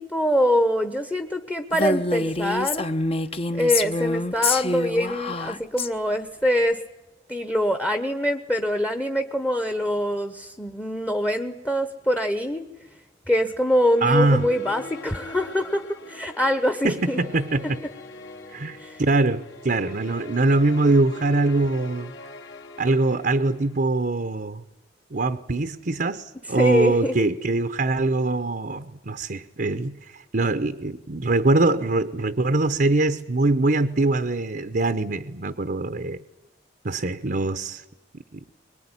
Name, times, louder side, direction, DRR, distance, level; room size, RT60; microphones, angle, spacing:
voice 1, 0.0-2.9 3.5-6.8 7.3-12.7 13.3-17.2 18.8-19.0 26.6-27.2, equal, 10° left, 7 dB, 1.1 m, -24 dB
Female speech woman speaking, 1.7-5.9, left 3 dB, 30° left, 1.0 m, -26 dB
sound 1, 13.6-24.0, left 3 dB, 70° left, 3.7 m, -43 dB
voice 2, 14.0-14.5 16.8-17.8 18.5-22.1 22.8-24.6 25.1-36.2 36.8-37.8 38.3-38.4, right 2 dB, 50° right, 9 dB, 0.9 m, -23 dB
23.5 x 21.5 x 9.9 m, 1.0 s
head